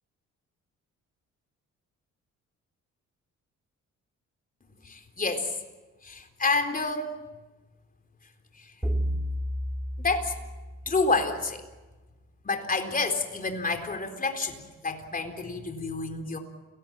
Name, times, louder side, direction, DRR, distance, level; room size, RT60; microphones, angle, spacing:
voice 1, 4.8-5.6 6.0-7.1 8.6-8.7 10.0-10.3 10.9-11.6 12.4-16.4, left 3 dB, 30° left, 6 dB, 4.1 m, -29 dB
sound 1, 8.8-11.3, equal, 5° right, 2.4 m, -31 dB
29.0 x 18.5 x 9.1 m, 1.2 s
cardioid pair, 90°, 30 cm